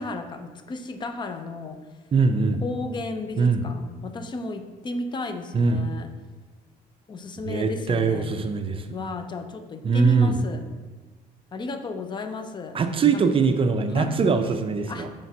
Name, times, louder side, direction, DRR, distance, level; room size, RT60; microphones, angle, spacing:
voice 1, 0.0-1.8 2.6-6.1 7.1-8.3 8.9-10.7 11.5-12.8 13.1-13.3 13.9-14.1 14.9-15.1, left 3 dB, 25° left, 8 dB, 0.5 m, -33 dB
voice 2, 2.1-2.6 3.4-3.6 5.5-5.8 7.5-8.8 9.8-10.3 12.7-15.1, right 5 dB, 30° right, 7 dB, 0.4 m, -22 dB
7.1 x 5.1 x 2.7 m, 1.3 s
cardioid pair, 110°, 17 cm